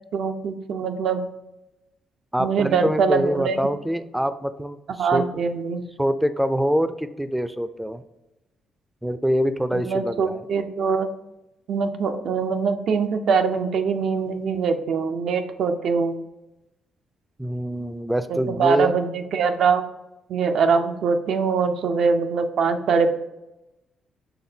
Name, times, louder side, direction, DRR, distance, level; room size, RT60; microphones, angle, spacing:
voice 1, 0.1-1.3 2.4-3.6 5.0-5.8 9.7-11.1 11.7-16.2 18.3-19.9 20.3-23.2, right 5 dB, 70° right, 7 dB, 0.5 m, -23 dB
voice 2, 2.3-5.4 6.0-8.0 9.0-10.4 17.4-19.0, equal, 5° right, 11 dB, 0.3 m, -25 dB
5.8 x 3.4 x 2.7 m, 0.96 s
cardioid pair, 90°, 0 cm